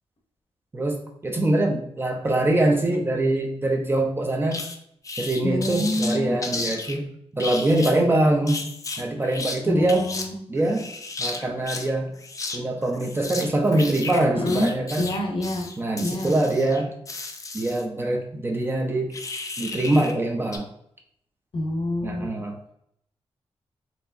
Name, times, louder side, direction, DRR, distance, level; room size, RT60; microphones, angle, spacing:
voice 1, 0.7-4.6 5.2-8.7 9.0-10.1 10.5-10.9 11.2-12.1 12.5-15.1 15.8-17.0 17.5-19.1 19.6-20.7 22.0-22.6, right 1 dB, 20° right, 2 dB, 0.6 m, -23 dB
sound 1, 4.5-4.8 5.0-7.0 7.4-8.0 8.5-9.6 9.9-10.3 10.6-11.9 12.2-12.6 12.8-17.8 19.1-20.2 20.5-20.6, left 3 dB, 30° left, 0.4 m, -34 dB
voice 2, 5.4-6.3 9.6-10.4 14.3-14.7 15.0-15.7 16.0-16.3 21.5-22.3, left 1 dB, 50° left, 2 dB, 0.8 m, -27 dB
4.3 x 2.9 x 2.6 m, 0.71 s
wide cardioid pair, 135°, 11 cm